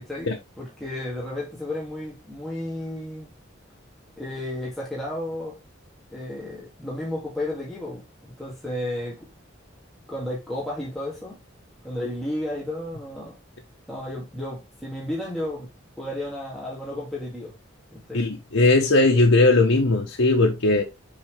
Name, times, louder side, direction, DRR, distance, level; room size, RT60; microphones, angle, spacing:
voice 1, 0.0-3.3 4.2-5.5 6.1-8.0 8.4-9.3 10.1-11.4 11.8-13.4 13.9-15.7 16.0-17.5 17.9-18.2, left 1 dB, ahead, 2.4 m, -32 dB
voice 2, 18.1-20.8, left 2 dB, 85° left, 1.1 m, -18 dB
6.9 x 4.8 x 3.4 m
head